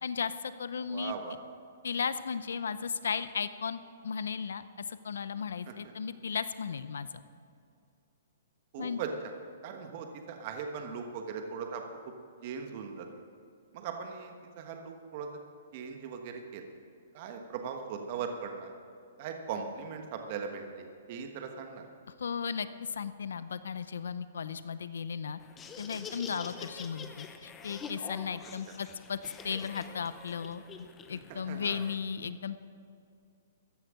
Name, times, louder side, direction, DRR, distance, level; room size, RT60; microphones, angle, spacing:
voice 1, 0.0-1.1 1.8-7.1 8.8-9.0 22.1-25.4 25.8-29.2 29.4-30.6 31.1-32.6, left 6 dB, 90° left, 14 dB, 0.6 m, -35 dB
voice 2, 0.9-1.4 5.7-5.8 8.7-9.1 9.6-11.8 12.4-13.1 13.7-15.3 15.7-16.6 17.1-18.7 19.2-21.9 31.3-31.8, right 6 dB, 40° right, 4 dB, 1.3 m, -39 dB
Laughter, 25.4-31.9, left 5 dB, 15° left, 0.8 m, -46 dB
14.5 x 10.5 x 6.4 m, 2.5 s
hypercardioid pair, 160°, 0 cm